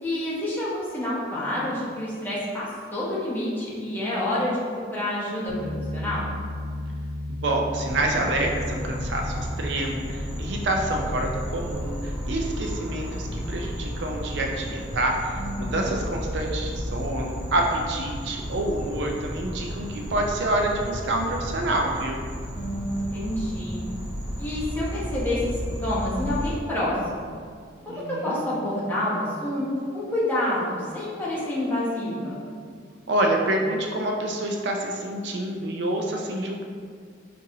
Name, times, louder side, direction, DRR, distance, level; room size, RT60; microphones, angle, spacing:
voice 1, 0.0-6.3 15.4-15.9 22.5-23.8 24.4-25.4 25.8-27.3 27.9-32.4, left 1 dB, 10° left, -8 dB, 0.8 m, -28 dB
Bass guitar, 5.5-11.7, left 1 dB, 60° left, 0.5 m, -34 dB
voice 2, 7.3-22.2 27.9-28.4 33.1-36.6, right 1 dB, 65° right, 1 dB, 0.4 m, -27 dB
sound 1, 7.9-26.5, equal, 10° right, 1.3 m, -33 dB
5.4 x 2.5 x 2.7 m, 2.1 s
head